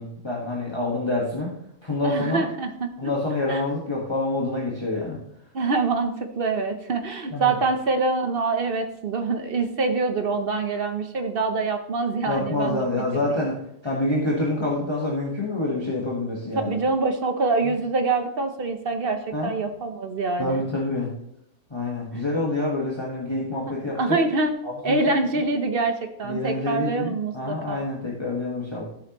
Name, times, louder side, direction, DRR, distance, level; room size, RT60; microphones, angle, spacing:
voice 1, 0.0-1.5 1.8-2.4 3.0-5.2 7.3-7.6 12.2-13.5 13.8-16.8 19.3-19.5 20.4-21.1 21.7-24.2 24.6-25.0 26.2-28.9, left 2 dB, 20° left, -5 dB, 1.5 m, -27 dB
voice 2, 2.0-3.1 3.5-3.6 5.5-12.9 13.3-13.4 16.7-20.6 23.9-24.5 24.8-27.8, right 3 dB, 50° right, 7 dB, 1.0 m, -25 dB
12.5 x 7.8 x 3.0 m, 0.75 s
omnidirectional pair, 1.3 m